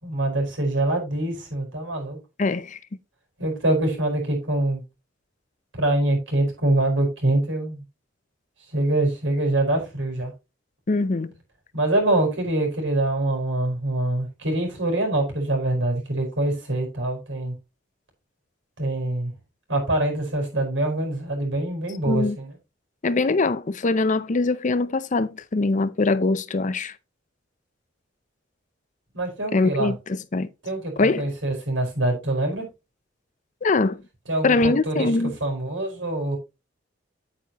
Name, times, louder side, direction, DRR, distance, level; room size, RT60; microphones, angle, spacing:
voice 1, 0.0-2.2 3.4-4.8 5.7-7.8 8.7-10.3 11.7-17.5 18.8-19.3 19.7-22.5 29.1-29.9 30.6-32.7 34.3-35.1 35.4-36.4, right 1 dB, 85° right, 4.8 m, -24 dB
voice 2, 2.4-2.8 10.9-11.3 22.1-22.4 23.0-26.9 29.5-30.5 31.0-31.3 33.6-34.0 34.4-35.4, left 3 dB, 40° left, 0.6 m, -22 dB
9.0 x 8.5 x 3.0 m
head